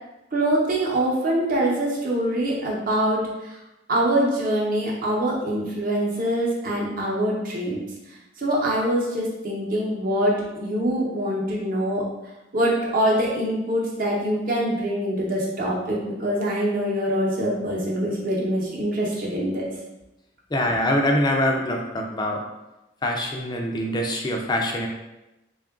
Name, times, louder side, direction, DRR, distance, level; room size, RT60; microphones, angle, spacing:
voice 1, 0.3-3.6 3.9-7.8 8.4-12.1 12.5-19.7, right 1 dB, 45° right, -3 dB, 0.8 m, -24 dB
voice 2, 20.5-22.4 23.0-24.9, left 1 dB, 20° left, 1 dB, 0.4 m, -24 dB
3.7 x 2.4 x 3.5 m, 0.96 s
head